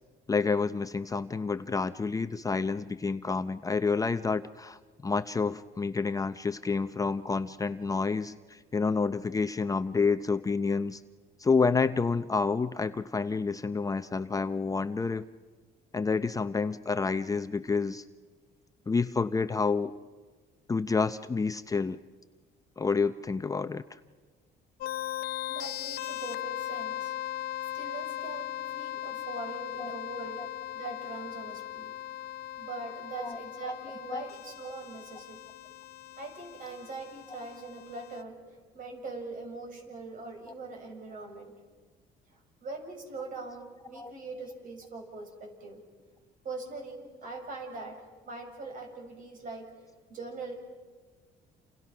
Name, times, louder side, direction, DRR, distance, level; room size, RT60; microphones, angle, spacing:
voice 1, 0.3-11.0 11.4-15.3 15.9-18.0 18.9-19.9 20.7-22.0 22.8-23.8 29.8-29.9 30.4-30.5 33.2-33.4 33.7-33.8 34.1-34.2 37.3-37.4 43.9-44.1, left 4 dB, 20° left, 10 dB, 0.7 m, -29 dB
sound 1, 24.8-38.2, left 13 dB, 70° left, 0.8 m, -38 dB
voice 2, 25.5-27.1 27.7-30.4 30.7-31.9 32.6-35.5 36.2-41.5 42.3-45.8 46.4-49.7 50.1-50.5, right 3 dB, 55° right, 3 dB, 7.0 m, -42 dB
29.5 x 29.0 x 6.0 m, 1.4 s
cardioid pair, 110°, 17 cm